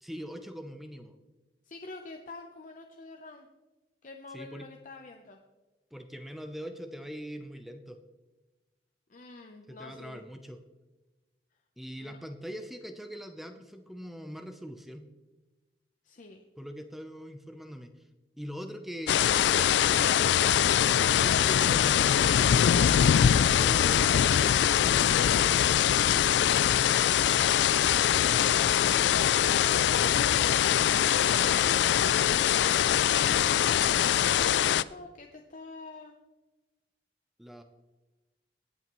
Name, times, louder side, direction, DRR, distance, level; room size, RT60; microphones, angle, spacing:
voice 1, 0.0-1.1 4.3-4.7 5.9-8.0 9.7-10.6 11.8-15.1 16.6-17.9 18.4-20.4 21.2-25.7 37.4-37.6, equal, ahead, 6 dB, 0.6 m, -42 dB
voice 2, 1.6-3.5 4.0-5.4 9.1-10.2 12.0-12.2 16.0-16.4 26.6-33.4 34.3-36.1, left 3 dB, 45° left, 3 dB, 0.8 m, -46 dB
sound 1, 19.1-34.8, left 10 dB, 80° left, 0.3 m, -23 dB
sound 2, 20.3-23.7, right 3 dB, 75° right, 3.6 m, -54 dB
18.5 x 8.6 x 3.1 m, 1.2 s
head